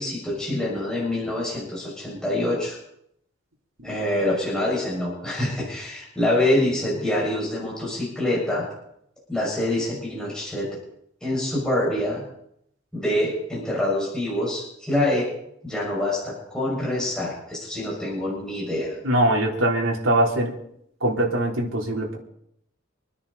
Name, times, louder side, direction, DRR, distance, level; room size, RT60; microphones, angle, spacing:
voice 1, 0.0-2.8 3.8-8.7 9.3-10.8 11.2-12.2 12.9-15.3 15.6-19.0, left 1 dB, 5° left, -6 dB, 6.0 m, -25 dB
voice 2, 19.0-20.5 21.0-22.2, right 1 dB, 80° right, -1 dB, 3.6 m, -22 dB
27.5 x 10.0 x 4.1 m, 0.74 s
head